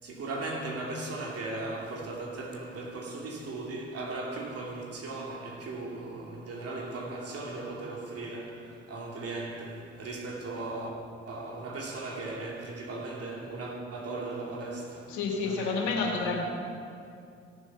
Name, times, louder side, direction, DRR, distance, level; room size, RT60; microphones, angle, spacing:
voice 1, 0.0-10.9 11.3-16.4, right 2 dB, 55° right, 2.7 m, -37 dB
voice 2, 15.1-16.4, left 4 dB, 80° left, 2.1 m, -29 dB
17.0 x 7.2 x 5.6 m
hypercardioid pair, 45°, 29 cm